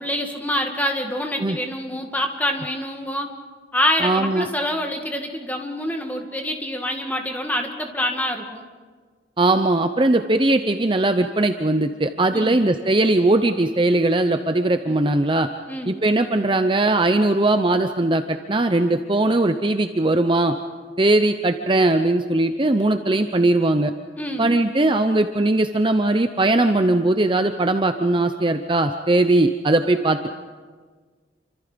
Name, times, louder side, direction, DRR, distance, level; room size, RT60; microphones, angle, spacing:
voice 1, 0.0-3.3 3.7-8.6 12.3-12.6 15.7-16.0 24.2-24.5, left 1 dB, 10° left, 3 dB, 2.1 m, -26 dB
voice 2, 4.0-4.5 9.4-15.5 15.9-20.5 21.0-23.9 24.4-30.3, right 2 dB, 25° right, 7 dB, 0.7 m, -19 dB
28.0 x 25.5 x 5.2 m, 1.5 s
head